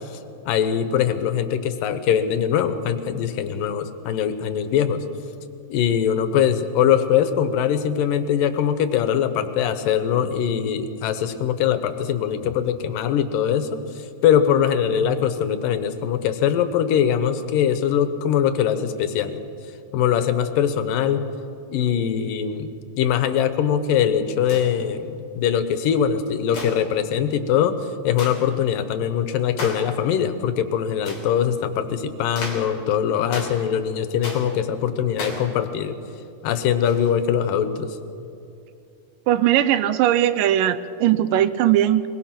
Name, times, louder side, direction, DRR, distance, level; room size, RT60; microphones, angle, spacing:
voice 1, 0.5-5.0 5.7-13.8 14.2-19.4 19.9-21.3 21.7-22.7 23.0-36.0 36.4-38.0, left 9 dB, 85° left, 10 dB, 2.7 m, -22 dB
sound 1, 24.4-24.8 26.5-26.9 28.2-28.4 29.6-29.9 31.0-31.3 32.4-32.7 33.3-33.6 34.2-34.5 35.2-35.5 36.9-37.1, left 2 dB, 45° left, 4.0 m, -33 dB
voice 2, 39.3-42.0, right 12 dB, 85° right, 13 dB, 2.4 m, -19 dB
22.0 x 21.5 x 5.9 m, 2.6 s
omnidirectional pair, 3.9 m